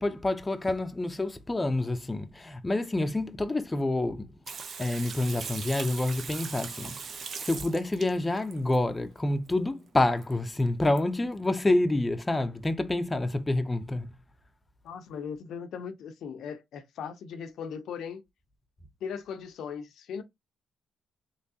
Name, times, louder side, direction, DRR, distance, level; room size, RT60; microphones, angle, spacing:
voice 1, 0.0-4.3 4.8-14.1, left 2 dB, 15° left, 0.6 m, -28 dB
Water tap faucet / Sink (filling or washing), 4.5-8.8 10.2-10.3 10.6-10.7 11.0-11.1, right 6 dB, 55° right, 0.7 m, -40 dB
voice 2, 14.8-18.2 19.0-20.2, left 7 dB, 75° left, 0.6 m, -38 dB
3.4 x 3.1 x 2.7 m
cardioid pair, 90°, 0 cm